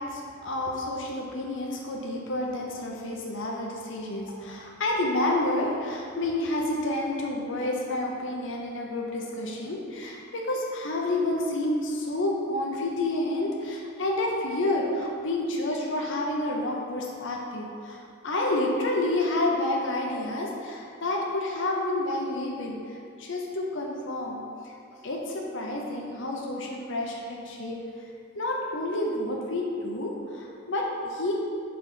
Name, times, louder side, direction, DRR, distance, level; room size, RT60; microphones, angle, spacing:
voice 1, 0.0-24.7 25.0-27.8 28.3-31.3, left 1 dB, 60° left, -1 dB, 0.7 m, -29 dB
5.2 x 4.0 x 5.5 m, 2.5 s
head